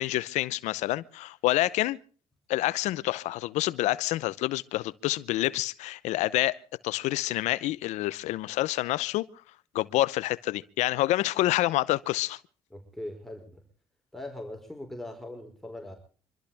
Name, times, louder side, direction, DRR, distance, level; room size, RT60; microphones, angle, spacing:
voice 1, 0.0-2.0 2.5-6.6 6.8-9.3 9.7-12.4, left 16 dB, 85° left, 0.7 m, -27 dB
voice 2, 12.7-13.6 14.1-16.0, left 1 dB, ahead, 4.7 m, -40 dB
25.5 x 13.5 x 3.5 m
cardioid pair, 75°, 12 cm